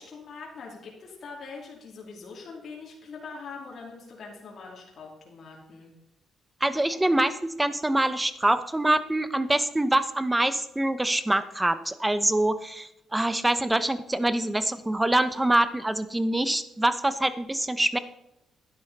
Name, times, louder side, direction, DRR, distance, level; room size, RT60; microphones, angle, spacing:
voice 1, 0.0-5.9, left 4 dB, 55° left, -2 dB, 2.9 m, -43 dB
voice 2, 6.6-18.0, right 1 dB, 10° right, 13 dB, 0.8 m, -25 dB
11.5 x 10.0 x 4.1 m, 0.86 s
cardioid pair, 90°, 0 cm